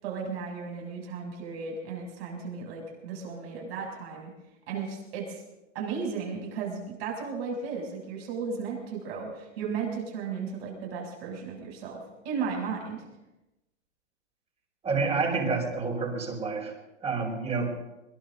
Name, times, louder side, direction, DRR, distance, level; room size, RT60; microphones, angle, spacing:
voice 1, 0.0-4.3 4.7-5.4 5.7-13.0, right 5 dB, 55° right, 0 dB, 7.4 m, -35 dB
voice 2, 14.8-16.7 17.0-17.7, right 4 dB, 15° right, 1 dB, 4.8 m, -28 dB
23.0 x 22.5 x 2.7 m, 0.96 s
hypercardioid pair, 115°, 36 cm